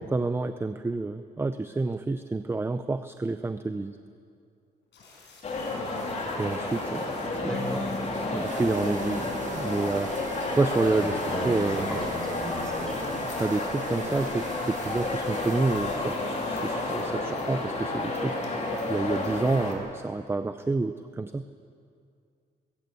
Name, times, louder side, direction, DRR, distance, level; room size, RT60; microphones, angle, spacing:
voice 1, 0.1-4.0 6.4-7.6 8.3-10.2 10.5-12.0 13.4-18.4 18.9-21.4, right 3 dB, 15° right, 10 dB, 0.5 m, -29 dB
sound 1, 4.8-17.0, left 3 dB, 75° left, 5.9 m, -51 dB
sound 2, 5.4-19.7, left 2 dB, 40° left, 3.0 m, -31 dB
voice 2, 7.4-8.1 11.0-13.1, right 1 dB, 5° left, 1 dB, 4.2 m, -36 dB
sound 3, 8.4-16.0, right 6 dB, 40° right, 1.0 m, -43 dB
21.5 x 15.5 x 8.2 m, 2.3 s
cardioid pair, 160°, 19 cm